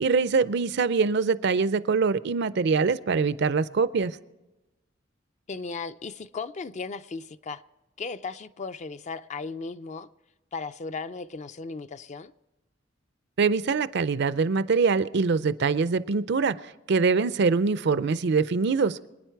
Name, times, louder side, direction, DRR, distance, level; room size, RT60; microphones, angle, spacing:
voice 1, 0.0-4.2 13.4-19.0, right 4 dB, 60° right, 0.5 m, -24 dB
voice 2, 5.5-7.6 8.0-10.1 10.5-12.3, left 4 dB, 40° left, 0.4 m, -36 dB
26.0 x 9.6 x 4.6 m
head